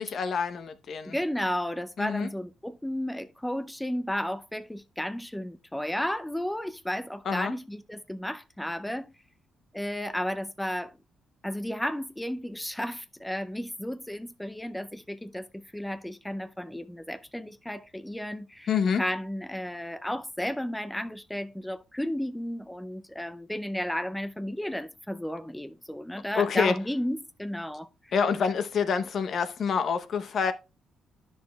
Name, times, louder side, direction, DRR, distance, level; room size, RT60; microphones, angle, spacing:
voice 1, 0.0-1.2 2.0-2.3 7.3-7.5 18.7-19.0 26.3-26.8 28.1-30.5, left 6 dB, 60° left, 0.8 m, -27 dB
voice 2, 1.0-9.1 9.7-10.9 11.4-18.7 19.0-28.1, equal, 5° left, 0.4 m, -33 dB
10.5 x 6.3 x 2.2 m
cardioid pair, 90°, 0 cm